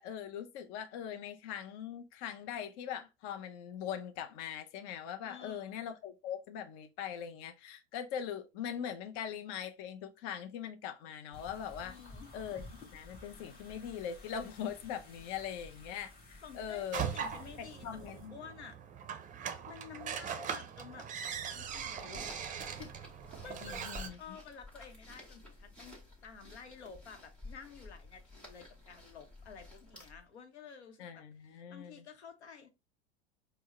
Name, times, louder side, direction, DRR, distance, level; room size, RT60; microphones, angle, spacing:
voice 1, 0.0-12.0 12.3-12.6 12.9-17.1 17.8-18.4 23.6-24.4 31.0-32.0, left 8 dB, 50° left, 0.6 m, -41 dB
voice 2, 5.2-5.9 11.8-12.3 16.4-17.9 18.3-18.8 19.7-21.1 21.5-22.5 22.8-23.1 23.4-23.9 24.2-32.7, left 6 dB, 90° left, 0.9 m, -51 dB
sound 1, 11.3-18.3, left 2 dB, 30° left, 1.3 m, -53 dB
sound 2, 16.9-24.1, right 8 dB, 25° right, 0.5 m, -40 dB
sound 3, 21.4-30.3, left 2 dB, 5° left, 2.0 m, -53 dB
4.5 x 2.1 x 3.0 m
hypercardioid pair, 90°, 33 cm